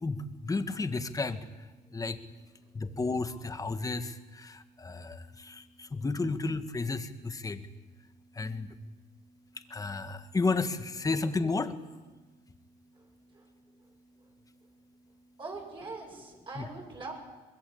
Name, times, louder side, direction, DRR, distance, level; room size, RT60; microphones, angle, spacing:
voice 1, 0.0-2.2 2.7-7.7 8.3-8.8 9.6-11.8 16.6-16.7, left 3 dB, 20° left, 9 dB, 1.8 m, -33 dB
voice 2, 15.4-17.1, right 3 dB, 30° right, 0 dB, 7.7 m, -43 dB
24.0 x 21.5 x 8.7 m, 1.2 s
cardioid pair, 110°, 17 cm